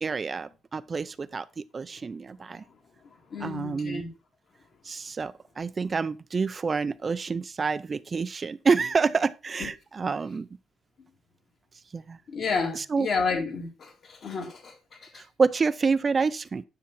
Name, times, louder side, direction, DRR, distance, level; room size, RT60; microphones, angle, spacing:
voice 1, 0.0-2.6 3.4-4.0 4.8-10.5 11.9-12.2 12.7-13.1 15.1-16.6, right 5 dB, 35° right, 0.4 m, -28 dB
voice 2, 3.3-4.1 12.3-15.2, left 4 dB, 55° left, 2.5 m, -31 dB
10.5 x 5.9 x 4.1 m
cardioid pair, 90°, 0 cm